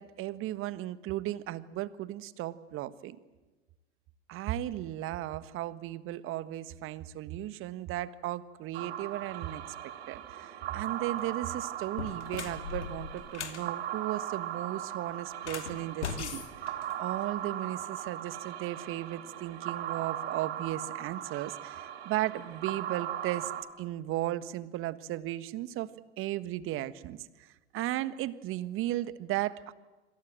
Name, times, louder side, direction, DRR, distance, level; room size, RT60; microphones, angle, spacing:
voice 1, 0.0-3.2 4.3-16.4 17.0-23.5 23.8-25.9 26.2-29.7, right 14 dB, 35° right, 15 dB, 1.5 m, -35 dB
sound 1, 8.7-23.6, right 11 dB, 65° right, 3.1 m, -38 dB
sound 2, 11.0-11.3 11.8-13.7 15.3-17.4, left 7 dB, 75° left, 2.7 m, -39 dB
27.0 x 26.0 x 7.6 m, 1.2 s
figure-of-eight pair, 90°, 34 cm